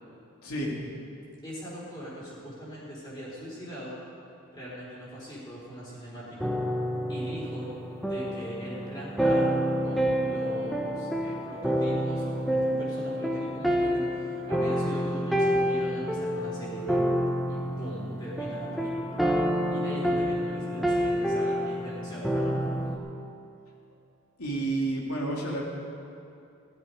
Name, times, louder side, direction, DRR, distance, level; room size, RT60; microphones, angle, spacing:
voice 1, 0.4-0.7 24.4-25.6, right 2 dB, 90° left, -2 dB, 2.6 m, -30 dB
voice 2, 1.4-4.0 4.5-6.5 7.1-7.7 8.0-9.5 9.8-17.0 17.5-19.2 19.7-22.7, equal, 20° left, -8 dB, 4.4 m, -41 dB
sound 1, 6.4-23.0, equal, ahead, 0.9 m, -28 dB
16.0 x 12.5 x 5.0 m, 2.6 s
head